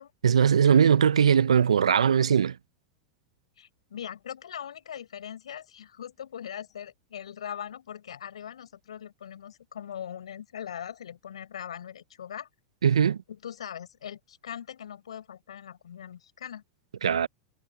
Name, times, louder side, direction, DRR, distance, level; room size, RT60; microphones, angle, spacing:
voice 1, 0.2-2.6 12.8-13.2 17.0-17.3, right 7 dB, 80° right, 0.7 m, -20 dB
voice 2, 3.6-12.5 13.3-16.6, left 9 dB, 75° left, 5.0 m, -41 dB
hypercardioid pair, 95°, 3 cm